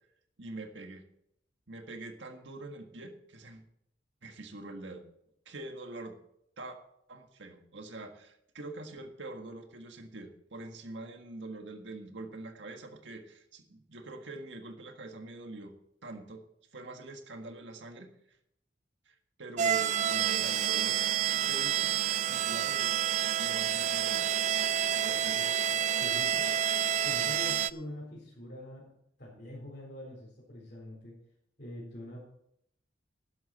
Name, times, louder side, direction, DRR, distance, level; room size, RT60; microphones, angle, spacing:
voice 1, 0.4-1.1 1.7-3.6 4.2-5.0 5.5-6.2 6.6-6.8 7.1-15.7 16.0-16.4 16.7-18.1 19.1-22.0 22.2-23.0 23.4-24.3 24.9-25.4 25.7-26.4, right 2 dB, 70° right, 5 dB, 1.8 m, -44 dB
sound 1, 19.6-27.7, right 10 dB, 40° right, 0.3 m, -29 dB
voice 2, 26.0-26.5 27.0-28.9 29.2-31.2 31.6-32.2, left 1 dB, 50° left, -7 dB, 4.3 m, -44 dB
12.5 x 11.0 x 4.3 m, 0.73 s
head